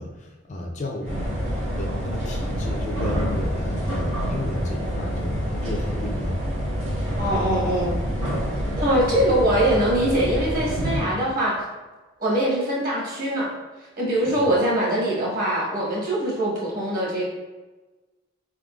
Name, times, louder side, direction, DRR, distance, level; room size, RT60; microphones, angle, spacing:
voice 1, 0.0-1.3 1.8-6.4 14.2-14.5, left 1 dB, 35° left, 1 dB, 0.4 m, -33 dB
sound 1, 1.0-11.0, equal, 80° right, 1.5 m, -27 dB
voice 2, 7.2-8.0 8.8-11.6 12.2-13.5 14.0-17.2, right 1 dB, 45° right, -4 dB, 1.2 m, -22 dB
4.4 x 3.6 x 2.3 m, 1.2 s
head